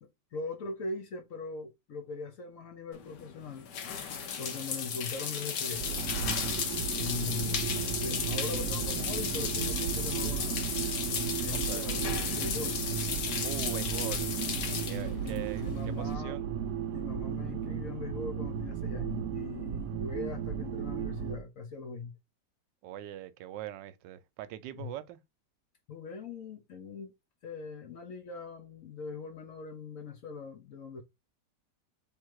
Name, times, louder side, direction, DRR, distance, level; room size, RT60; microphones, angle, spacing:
voice 1, 0.3-3.7 4.4-5.9 7.0-10.6 11.4-12.8 14.8-16.4 16.9-22.1 24.7-24.9 25.9-27.1 27.4-31.0, left 4 dB, 60° left, 1.0 m, -40 dB
sound 1, 2.9-16.1, left 7 dB, 75° left, 1.5 m, -35 dB
sound 2, 5.7-21.4, right 8 dB, 70° right, 0.8 m, -35 dB
voice 2, 11.5-11.9 13.4-14.3 14.8-16.4 22.8-25.2, right 13 dB, 90° right, 1.2 m, -41 dB
3.6 x 2.8 x 4.6 m
omnidirectional pair, 1.9 m